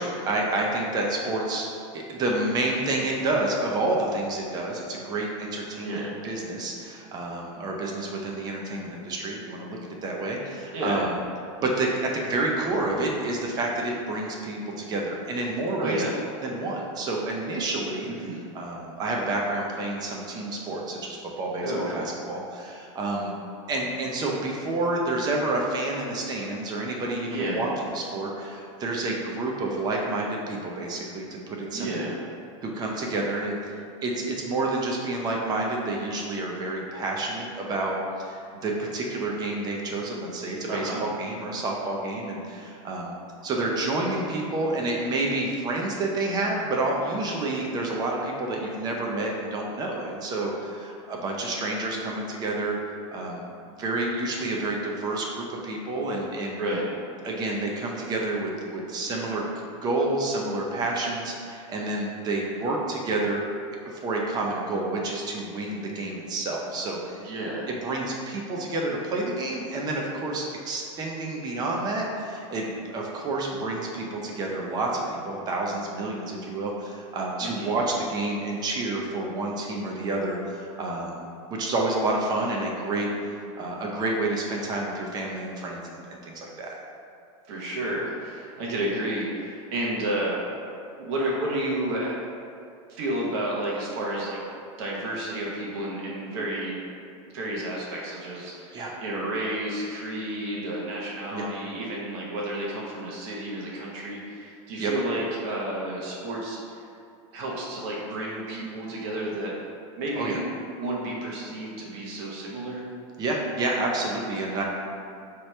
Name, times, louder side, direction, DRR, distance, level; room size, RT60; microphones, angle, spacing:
voice 1, 0.0-1.7 1.9-11.1 11.6-16.0 16.4-18.1 18.5-23.4 23.7-32.1 32.6-33.7 34.0-43.2 43.4-52.8 53.1-56.6 57.2-59.5 59.8-63.4 63.9-67.3 67.7-86.8 98.7-98.9 101.3-101.5 104.8-104.9 110.2-110.4 113.2-114.6, right 2 dB, 25° right, -1 dB, 0.6 m, -29 dB
voice 2, 5.8-6.1 10.7-11.0 15.8-16.1 18.0-18.4 21.6-22.2 27.3-27.7 31.7-32.1 40.7-41.0 56.6-56.8 67.2-67.7 77.4-77.7 87.5-90.4 91.0-92.2 92.9-94.4 94.8-96.8 97.3-106.6 107.3-109.5 110.0-110.5 110.8-112.8, right 1 dB, 55° right, -4 dB, 0.9 m, -31 dB
4.6 x 3.0 x 3.1 m, 2.5 s
supercardioid pair, 150°, 17 cm